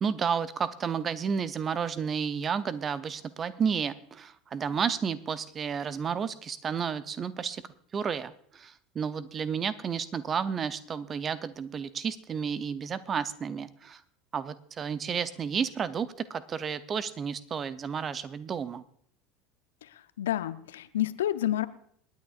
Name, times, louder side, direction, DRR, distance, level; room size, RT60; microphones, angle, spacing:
voice 1, 0.0-7.6 7.9-14.0 14.3-18.8, right 6 dB, 30° right, 15 dB, 0.7 m, -31 dB
voice 2, 19.8-21.7, left 12 dB, 70° left, 14 dB, 0.6 m, -30 dB
27.5 x 9.5 x 2.5 m, 0.66 s
figure-of-eight pair, 75°, 0 cm